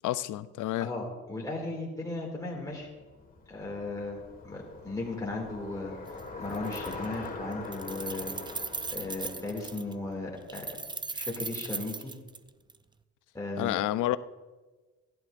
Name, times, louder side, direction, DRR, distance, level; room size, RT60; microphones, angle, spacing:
voice 1, 0.0-0.9 13.6-14.2, left 14 dB, 80° left, 14 dB, 0.5 m, -29 dB
voice 2, 0.8-2.9 3.5-5.9 6.4-8.3 8.9-10.8 11.1-12.1 13.3-13.7, left 2 dB, 10° left, -2 dB, 2.5 m, -36 dB
Bicycle, 2.7-11.0, left 3 dB, 30° left, 1.8 m, -43 dB
Keys jangling, 6.1-6.2 6.5-7.3 7.5-9.9 10.5-12.8, right 4 dB, 15° right, 0.5 m, -38 dB
17.5 x 11.0 x 2.6 m, 1.2 s
cardioid pair, 90°, 30 cm